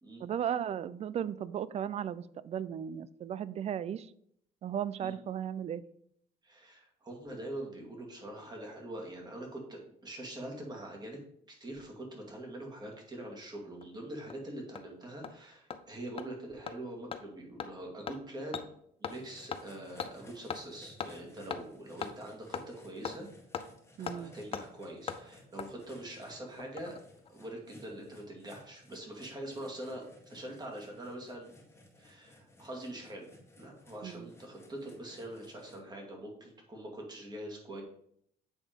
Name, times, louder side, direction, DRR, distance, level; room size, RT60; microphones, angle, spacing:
voice 1, 0.2-4.1 4.6-5.8 24.0-24.3 34.0-34.3, right 9 dB, 40° right, 17 dB, 0.4 m, -36 dB
voice 2, 6.4-11.2 11.5-18.7 19.0-23.3 24.0-27.0 27.3-31.5 32.0-33.3 33.6-37.8, right 1 dB, 25° right, 0 dB, 2.3 m, -44 dB
Hammer, 13.8-13.9 14.3-14.4 14.8-14.9 15.2-15.3 15.7-15.8 16.2-16.3 16.7-16.8 17.1-17.2 17.6-17.7 18.1-18.2 18.5-18.7 19.0-19.2 19.5-19.6 20.0-20.1 20.5-20.6 21.0-21.1 21.5-21.6 22.0-22.1 22.5-22.7 23.1-23.2 23.5-23.7 24.1-24.2 24.5-24.7 25.1-25.2 25.6-25.7 26.6-27.0 27.3-27.4, left 7 dB, 35° left, 0.6 m, -38 dB
sound 1, 19.0-35.8, left 1 dB, 15° left, 1.9 m, -58 dB
8.5 x 3.6 x 5.1 m, 0.69 s
cardioid pair, 110°, 17 cm